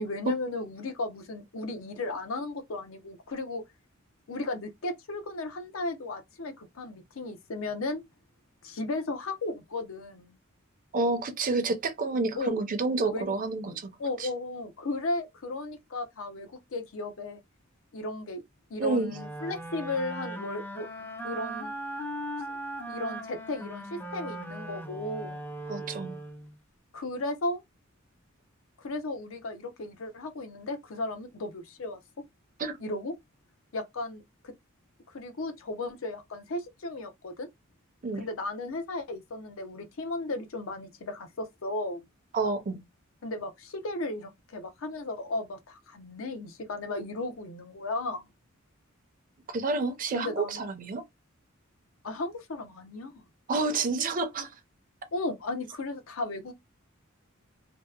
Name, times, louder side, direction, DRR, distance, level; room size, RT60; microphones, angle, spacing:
voice 1, 0.0-3.6 4.3-8.0 8.6-10.3 12.4-12.6 13.0-13.3 14.0-17.4 17.9-18.4 18.7-20.9 21.2-21.7 22.5-22.6 22.9-25.4 26.9-27.6 28.8-32.0 32.8-33.1 33.7-34.5 35.1-37.5 38.1-42.0 43.2-48.3 50.1-50.6 52.0-53.2 55.1-56.5, left 2 dB, 70° left, 0.6 m, -35 dB
voice 2, 10.9-13.9 14.2-14.3 18.8-19.1 25.7-26.2 32.6-32.8 38.0-38.2 42.3-42.8 49.5-51.0 53.5-54.5, right 3 dB, 40° right, 0.5 m, -29 dB
sound 1, 19.1-26.6, right 1 dB, 10° left, 0.5 m, -38 dB
2.7 x 2.0 x 2.3 m
head